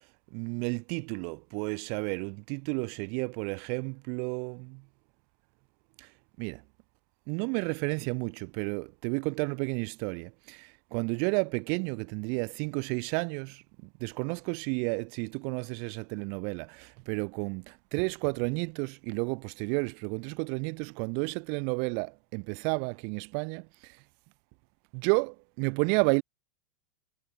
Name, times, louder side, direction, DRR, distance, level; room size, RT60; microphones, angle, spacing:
voice 1, 0.3-4.8 6.4-6.6 7.3-13.6 14.0-23.7 24.9-26.2, right 40 dB or more, 55° right, 2.5 m, -31 dB
hypercardioid pair, 110°, 2 cm